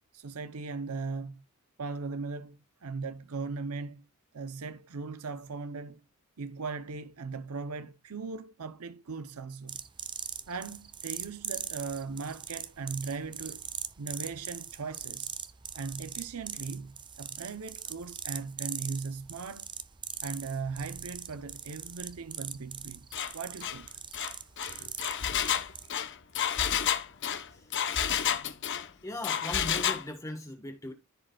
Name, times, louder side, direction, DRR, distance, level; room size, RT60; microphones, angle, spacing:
voice 1, 0.1-1.4 1.8-4.0 4.3-6.0 6.4-9.8 10.5-13.7 14.0-15.3 15.7-19.7 20.2-23.1 23.3-23.9, right 4 dB, 75° right, 0.7 m, -38 dB
sound 1, 9.7-25.9, right 8 dB, 20° right, 0.5 m, -41 dB
Engine, 23.1-23.3 23.6-23.8 24.1-28.9 29.2-30.0, left 9 dB, 55° left, 0.9 m, -30 dB
voice 2, 29.0-30.9, left 1 dB, 15° left, 1.3 m, -38 dB
14.5 x 5.0 x 2.3 m
head